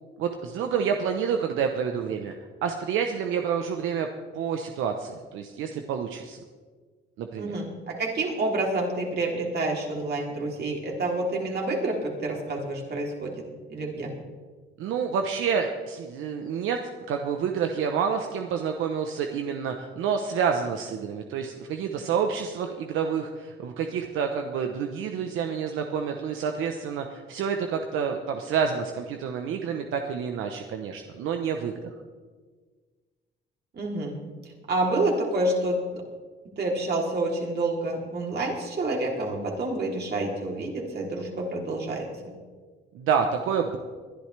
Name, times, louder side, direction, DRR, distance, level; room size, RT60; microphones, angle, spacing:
voice 1, 0.2-2.3 2.6-4.1 4.3-6.4 7.2-7.5 14.8-16.8 17.1-31.9 42.9-43.8, right 7 dB, 85° right, 5 dB, 0.9 m, -28 dB
voice 2, 7.4-13.3 13.7-14.1 33.7-34.2 34.7-36.0 36.6-42.1, right 2 dB, 55° right, -1 dB, 3.3 m, -28 dB
21.5 x 11.5 x 3.4 m, 1.5 s
cardioid pair, 90°, 20 cm